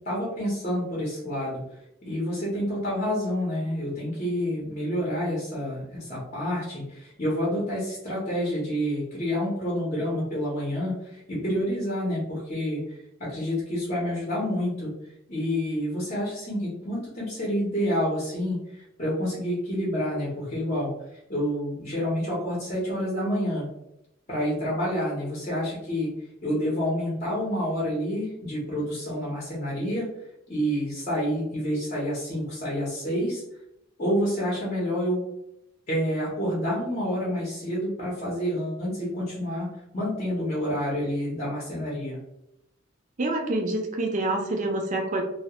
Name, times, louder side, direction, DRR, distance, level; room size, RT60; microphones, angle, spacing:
voice 1, 0.1-1.6 2.1-14.9 15.3-20.9 21.3-23.6 24.3-26.1 26.4-30.1 30.5-33.4 34.0-35.2 35.9-39.7 39.9-42.2, equal, 35° left, -6 dB, 0.7 m, -28 dB
voice 2, 43.2-45.2, right 2 dB, 40° right, 2 dB, 0.4 m, -27 dB
2.2 x 2.0 x 2.8 m, 0.83 s
head